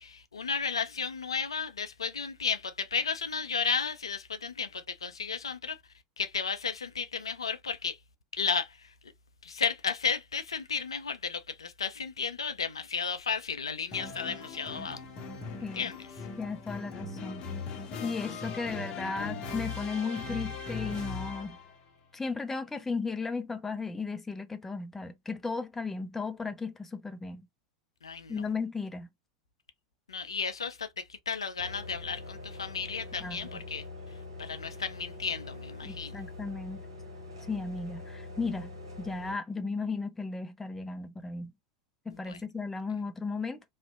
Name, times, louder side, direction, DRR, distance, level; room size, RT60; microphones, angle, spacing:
voice 1, 0.0-5.8 6.2-8.0 8.3-8.9 9.4-15.0 15.7-16.0 28.0-28.5 30.1-33.8 34.4-36.2 42.3-42.4, left 6 dB, 75° left, 0.4 m, -33 dB
sound 1, 13.9-21.8, left 4 dB, 35° left, 0.7 m, -39 dB
voice 2, 16.4-17.5 18.0-21.6 22.1-27.4 28.3-29.1 33.2-33.6 35.8-36.9 37.5-38.7 39.0-41.5 42.1-43.6, left 4 dB, 10° left, 0.4 m, -35 dB
sound 2, 31.6-39.4, left 2 dB, 70° right, 0.9 m, -44 dB
2.5 x 2.1 x 2.4 m
figure-of-eight pair, 85°, 3 cm